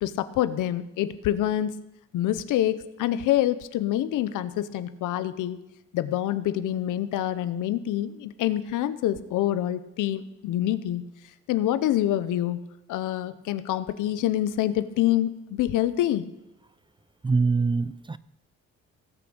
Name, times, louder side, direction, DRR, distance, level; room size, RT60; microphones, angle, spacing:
voice 1, 0.0-1.8 2.1-5.6 5.9-11.1 11.5-12.6 12.9-16.3, left 12 dB, 85° left, 13 dB, 0.9 m, -26 dB
voice 2, 17.2-18.2, right 4 dB, 15° right, 17 dB, 0.4 m, -24 dB
17.5 x 6.1 x 7.9 m, 0.91 s
cardioid pair, 90°, 30 cm